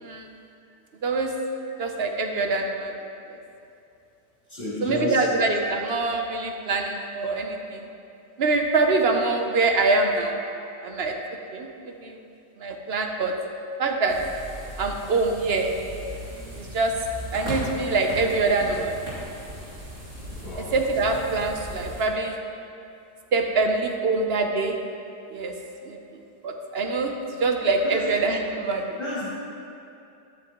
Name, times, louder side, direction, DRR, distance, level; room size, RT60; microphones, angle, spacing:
voice 1, 1.0-1.4 1.8-3.0 3.3-3.4 4.8-7.9 8.4-10.4 10.8-11.2 11.5-11.7 12.0-12.2 12.6-13.4 13.8-14.3 14.8-15.8 16.6-17.1 17.3-18.9 20.6-22.4 23.3-24.8 25.3-25.6 25.9-26.0 26.4-29.0, right 3 dB, 50° right, 4 dB, 0.8 m, -24 dB
voice 2, 4.5-5.4 20.4-20.7 27.8-28.0 29.0-29.3, left 1 dB, 40° left, -12 dB, 3.0 m, -32 dB
sound 1, 14.1-22.0, right 1 dB, 70° right, 3.6 m, -37 dB
13.0 x 12.0 x 3.0 m, 2.7 s
omnidirectional pair, 1.8 m